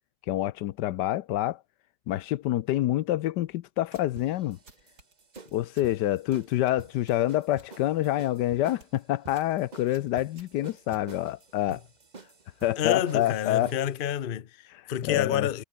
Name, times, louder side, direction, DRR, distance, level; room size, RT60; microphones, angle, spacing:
voice 1, 0.3-1.6 2.1-4.6 5.5-11.8 12.6-13.7 15.0-15.5, left 14 dB, 80° left, 1.3 m, -27 dB
sound 1, 3.8-4.2 4.6-5.9 6.3-7.8 8.1-8.4 8.7-9.0 9.3-9.6 9.9-11.5, right 3 dB, 65° right, 4.9 m, -57 dB
sound 2, 4.2-14.0, right 4 dB, 25° right, 1.4 m, -49 dB
voice 2, 12.8-15.6, left 10 dB, 50° left, 0.6 m, -28 dB
omnidirectional pair, 1.8 m